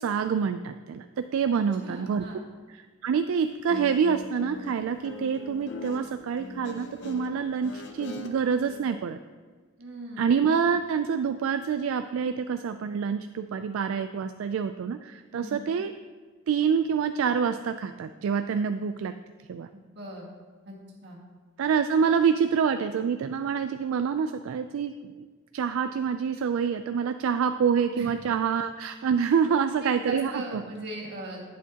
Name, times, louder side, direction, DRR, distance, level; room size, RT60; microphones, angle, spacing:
voice 1, 0.0-2.3 3.0-9.2 10.2-15.9 16.5-19.1 19.5-19.7 21.6-25.3 25.5-30.6, right 6 dB, 75° right, 9 dB, 0.3 m, -26 dB
voice 2, 1.5-2.4 9.8-10.2 15.3-15.7 19.7-20.3 20.7-20.8 21.0-21.2 27.9-28.1 29.8-31.4, right 1 dB, 50° right, -3 dB, 1.8 m, -39 dB
Guitar, 3.5-8.8, left 2 dB, 55° left, 0.6 m, -41 dB
11.0 x 8.5 x 2.8 m, 1.5 s
head